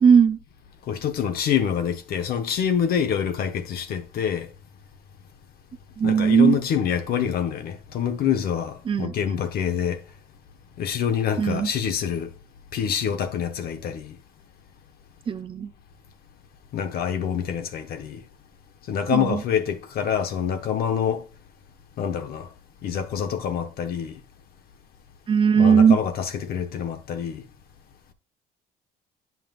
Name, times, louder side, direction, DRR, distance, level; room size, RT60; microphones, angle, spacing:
voice 1, 0.0-0.4 6.0-6.6 8.9-9.1 11.4-11.7 15.3-15.7 19.1-19.4 25.3-26.0, right 7 dB, 30° right, 0.4 m, -18 dB
voice 2, 0.9-4.5 6.0-10.0 10.8-12.3 12.7-14.2 16.7-18.2 18.9-21.2 22.0-22.5 22.8-24.1 25.6-27.4, left 8 dB, 65° left, 1.0 m, -26 dB
8.9 x 5.8 x 2.5 m
cardioid pair, 110°, 17 cm